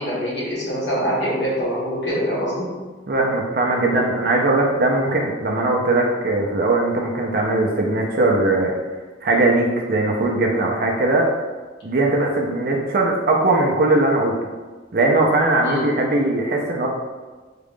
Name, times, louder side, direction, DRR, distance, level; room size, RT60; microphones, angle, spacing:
voice 1, 0.0-2.7 15.6-15.8, equal, 60° left, -8 dB, 1.5 m, -24 dB
voice 2, 3.1-8.7 9.2-11.3 11.8-14.3 14.9-16.9, right 2 dB, 50° right, 0 dB, 0.5 m, -19 dB
3.7 x 2.4 x 3.6 m, 1.3 s
head